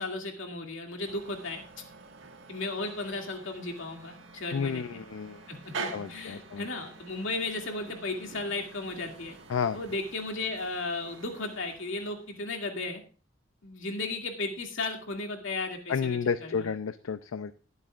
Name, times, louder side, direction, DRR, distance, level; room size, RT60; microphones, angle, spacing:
voice 1, 0.0-1.6 2.5-5.0 5.5-9.3 9.7-13.0 13.6-16.7, left 2 dB, 65° left, 2 dB, 2.4 m, -35 dB
sound 1, 1.1-12.4, right 4 dB, 65° right, 1.8 m, -46 dB
voice 2, 4.5-5.4 5.9-6.7 9.5-9.8 15.9-17.5, left 6 dB, 85° left, 11 dB, 0.5 m, -31 dB
20.5 x 8.0 x 2.4 m, 0.38 s
head